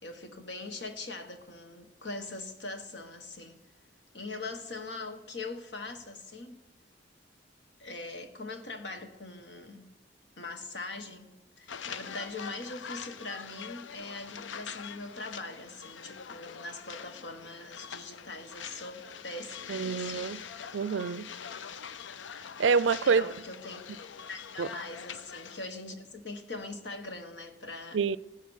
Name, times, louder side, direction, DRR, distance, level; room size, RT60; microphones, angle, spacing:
voice 1, 0.0-3.6 4.1-6.6 7.8-9.9 10.4-20.8 23.0-23.9 24.3-28.0, left 2 dB, 70° left, 1.5 m, -42 dB
sound 1, 11.7-25.7, left 7 dB, 85° left, 0.5 m, -44 dB
voice 2, 19.7-20.4 20.7-21.3 22.6-23.3 24.6-24.7 27.9-28.2, right 5 dB, 90° right, 0.4 m, -26 dB
15.5 x 10.0 x 6.5 m
head